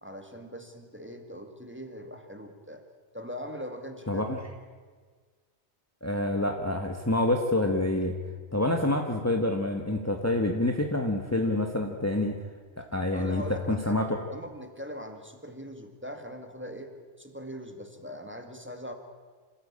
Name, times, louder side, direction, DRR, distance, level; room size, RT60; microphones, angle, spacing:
voice 1, 0.0-2.8 3.1-4.2 13.1-14.0 14.3-18.9, equal, 10° right, 5 dB, 2.0 m, -41 dB
voice 2, 4.1-4.4 6.0-8.1 8.5-12.4 12.8-14.2, left 1 dB, 15° left, 3 dB, 1.4 m, -27 dB
26.5 x 15.0 x 8.7 m, 1.5 s
omnidirectional pair, 1.2 m